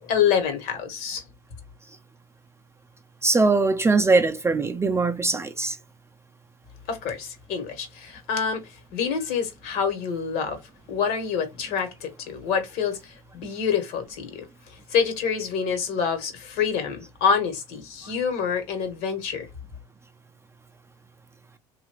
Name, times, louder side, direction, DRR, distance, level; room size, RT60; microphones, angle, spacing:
voice 1, 0.0-1.2 6.9-10.6 10.9-19.5, left 6 dB, 65° left, 1.3 m, -27 dB
voice 2, 3.2-5.8, right 3 dB, 15° right, 0.5 m, -21 dB
2.8 x 2.5 x 3.0 m
hypercardioid pair, 80°, 17 cm